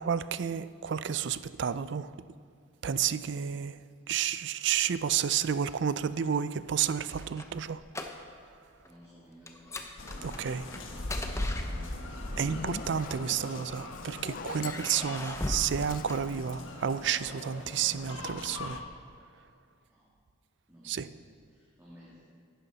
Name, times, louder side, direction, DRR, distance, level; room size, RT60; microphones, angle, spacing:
voice 1, 0.0-2.1 2.8-3.8 4.1-7.8 10.2-10.6 12.4-18.8 20.9-21.1, right 8 dB, 55° right, 15 dB, 0.4 m, -31 dB
sound 1, 6.7-8.6 8.8-9.1 9.5-12.3 13.1-14.0 14.6-16.9, left 1 dB, 15° left, 0.7 m, -39 dB
voice 2, 8.8-9.8 10.1-13.0 15.2-15.5 19.3-19.4 19.8-20.1 20.7-22.3, equal, 10° right, -8 dB, 2.1 m, -56 dB
sound 2, 10.0-18.8, left 1 dB, 70° left, 1.4 m, -40 dB
Zipper (clothing), 12.2-17.5, left 4 dB, 40° left, 0.4 m, -43 dB
14.5 x 11.5 x 4.1 m, 2.3 s
head